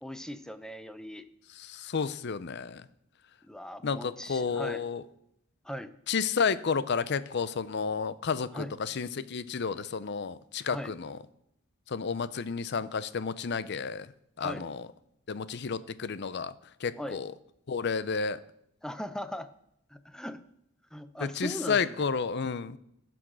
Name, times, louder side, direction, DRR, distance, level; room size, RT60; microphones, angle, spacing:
voice 1, 0.0-1.2 3.5-4.8 5.6-5.9 8.5-8.7 10.7-10.9 14.4-14.7 17.0-17.2 18.8-19.5 19.9-20.4 20.9-22.0, left 1 dB, 5° left, 11 dB, 0.5 m, -39 dB
voice 2, 1.5-2.9 3.8-5.0 6.1-11.2 11.9-14.1 14.4-14.9 15.3-16.5 16.8-17.3 17.7-18.4 21.2-22.8, left 5 dB, 55° left, 16 dB, 0.5 m, -31 dB
15.0 x 6.2 x 6.2 m, 0.75 s
head